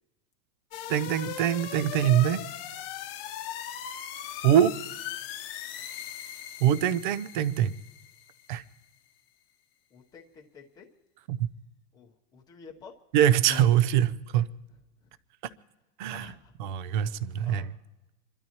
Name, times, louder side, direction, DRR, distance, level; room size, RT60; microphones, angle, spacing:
sound 1, 0.7-8.6 13.4-13.6, left 10 dB, 40° left, 0.9 m, -39 dB
voice 1, 0.9-2.4 4.4-4.7 6.6-7.7 8.5-8.6 11.3-11.5 13.1-14.5 16.0-16.3 16.6-17.7, right 11 dB, 35° right, 0.4 m, -23 dB
voice 2, 9.9-10.9 11.9-12.9 15.0-15.1 16.1-16.5 17.4-17.7, left 5 dB, 10° left, 0.8 m, -50 dB
28.5 x 12.5 x 2.9 m
supercardioid pair, 175°, 45 cm